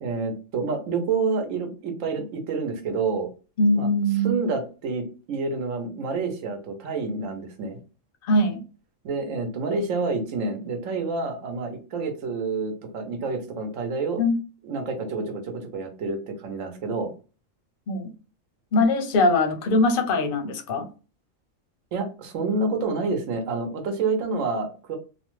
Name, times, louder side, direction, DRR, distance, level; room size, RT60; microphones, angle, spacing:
voice 1, 0.0-3.3 3.7-3.9 4.2-7.8 9.0-14.2 14.6-17.1 21.9-25.0, right 4 dB, 75° right, 5 dB, 1.1 m, -28 dB
voice 2, 3.6-4.4 8.2-8.6 14.2-14.4 17.9-18.1 18.7-20.9, left 1 dB, 55° left, 6 dB, 0.7 m, -21 dB
2.9 x 2.1 x 3.0 m, 0.34 s
omnidirectional pair, 1.4 m